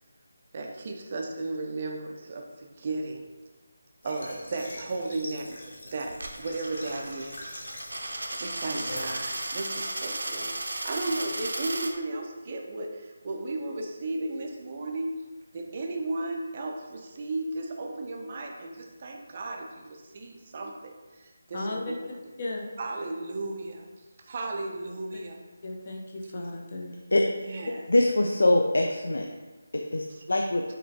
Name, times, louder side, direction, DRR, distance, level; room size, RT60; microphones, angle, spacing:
voice 1, 0.5-3.3 4.0-5.6 5.9-7.6 8.3-15.2 15.5-22.0 22.8-23.9 24.2-25.4 27.4-27.9 30.1-30.2, right 2 dB, 25° right, 2 dB, 0.4 m, -35 dB
Water / Water tap faucet, 4.0-9.2, left 1 dB, 60° left, 1.1 m, -43 dB
Coin (dropping), 6.1-11.9, right 2 dB, 80° right, 0.6 m, -34 dB
voice 2, 21.5-22.0 22.4-22.6 25.6-27.0, left 2 dB, 30° left, 0 dB, 0.5 m, -35 dB
voice 3, 27.9-29.3 29.7-30.6, left 1 dB, 85° left, 2 dB, 0.4 m, -23 dB
5.6 x 3.0 x 2.7 m, 1.2 s
figure-of-eight pair, 175°, 0 cm